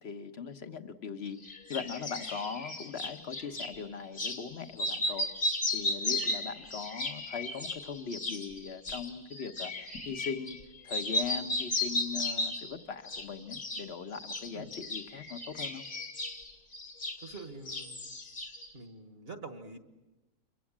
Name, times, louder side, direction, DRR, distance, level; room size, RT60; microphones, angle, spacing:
voice 1, 0.0-1.4 1.7-5.3 5.7-9.7 10.0-10.6 10.8-15.9, left 6 dB, 45° left, 7 dB, 1.5 m, -40 dB
sound 1, 1.4-3.7 4.1-4.4 4.7-10.6 10.9-12.7 13.1-13.9 14.1-17.4 17.7-18.7, left 2 dB, 75° left, 3.5 m, -35 dB
voice 2, 17.2-18.1 18.7-19.8, right 3 dB, 40° right, 7 dB, 1.9 m, -45 dB
28.5 x 23.5 x 7.5 m, 1.1 s
omnidirectional pair, 1.6 m